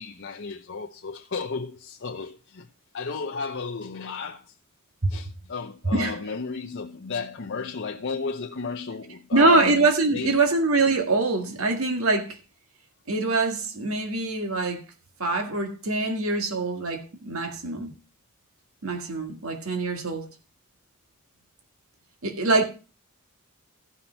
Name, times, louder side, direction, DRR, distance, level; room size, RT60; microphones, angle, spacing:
voice 1, 0.0-2.7 2.9-4.4 5.1-9.8 10.1-10.3, left 4 dB, 55° left, 0.8 m, -33 dB
voice 2, 9.3-12.4 13.1-14.8 15.2-17.9 18.8-20.3 22.2-22.7, right 3 dB, 70° right, 1.8 m, -24 dB
14.5 x 5.9 x 4.4 m
head